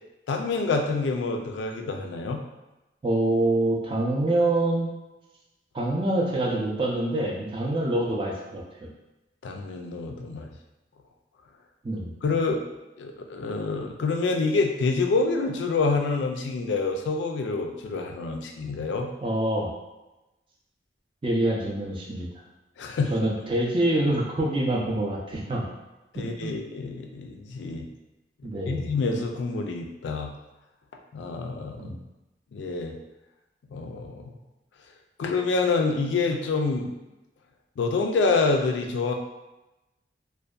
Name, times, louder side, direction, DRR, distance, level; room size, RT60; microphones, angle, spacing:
voice 1, 0.3-2.4 9.4-10.5 12.2-12.6 13.0-19.1 22.8-23.3 26.1-27.9 28.7-30.3 31.1-32.0 32.5-32.9 33.7-34.3 35.2-36.9 37.8-39.1, left 3 dB, 90° left, 4 dB, 0.3 m, -27 dB
voice 2, 3.0-4.9 5.7-8.9 11.8-12.1 19.2-19.7 21.2-22.3 23.1-25.7 26.1-26.5 28.4-28.9 31.8-31.9, right 1 dB, 30° right, -2 dB, 0.4 m, -26 dB
2.6 x 2.1 x 2.3 m, 1.0 s
head